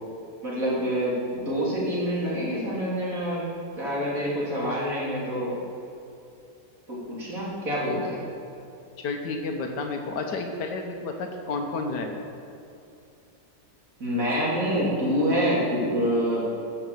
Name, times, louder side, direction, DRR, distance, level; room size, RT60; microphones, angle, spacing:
voice 1, 0.4-1.1 1.4-3.5 3.8-5.5 6.9-8.2 14.0-16.5, equal, 55° right, -7 dB, 3.8 m, -26 dB
voice 2, 9.0-12.3, left 3 dB, 85° left, 3 dB, 1.6 m, -31 dB
15.0 x 6.1 x 6.8 m, 2.6 s
omnidirectional pair, 1.8 m